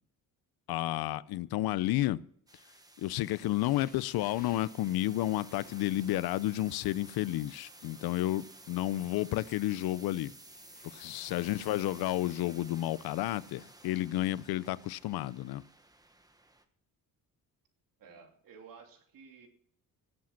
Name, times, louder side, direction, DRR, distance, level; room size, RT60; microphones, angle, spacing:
voice 1, 0.7-2.2 3.0-10.3 10.9-15.6, left 15 dB, 90° left, 0.6 m, -31 dB
sound 1, 2.5-16.6, right 2 dB, 10° right, 1.1 m, -54 dB
sound 2, 3.6-6.7 7.6-9.4 10.5-13.0 13.8-14.1 14.9-15.0, left 4 dB, 25° left, 1.4 m, -60 dB
voice 2, 11.3-12.1 18.0-19.5, right 5 dB, 65° right, 2.9 m, -55 dB
18.0 x 7.6 x 5.9 m
cardioid pair, 145°, 36 cm